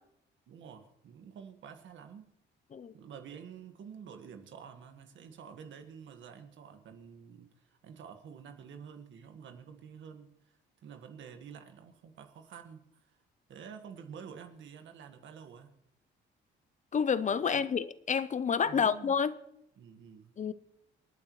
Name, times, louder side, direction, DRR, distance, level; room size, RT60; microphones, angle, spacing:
voice 1, 0.5-2.3 2.9-13.2 13.5-15.7 17.4-17.6 18.6-19.1 19.8-20.3, right 7 dB, 70° right, 1.7 m, -49 dB
voice 2, 16.9-19.3 20.4-20.5, left 6 dB, 40° left, 0.6 m, -29 dB
27.5 x 9.4 x 3.1 m
cardioid pair, 90°, 20 cm